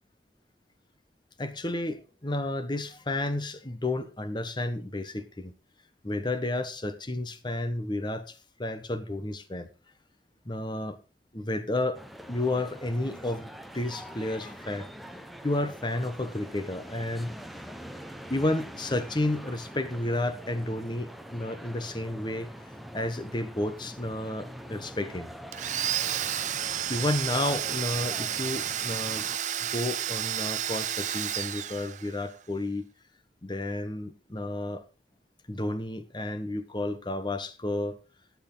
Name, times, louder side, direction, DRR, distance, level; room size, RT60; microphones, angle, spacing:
voice 1, 1.4-5.5 6.0-9.7 10.4-11.0 11.3-12.0 12.3-14.9 15.4-17.3 18.3-22.5 22.9-25.3 26.9-29.2 29.6-32.9 33.4-34.9 35.5-38.0, left 1 dB, 25° left, 1.1 m, -31 dB
sound 1, 11.9-29.4, equal, ahead, 0.9 m, -44 dB
Domestic sounds home sounds, 25.5-32.3, right 10 dB, 45° right, 0.7 m, -31 dB
13.0 x 9.7 x 3.9 m
head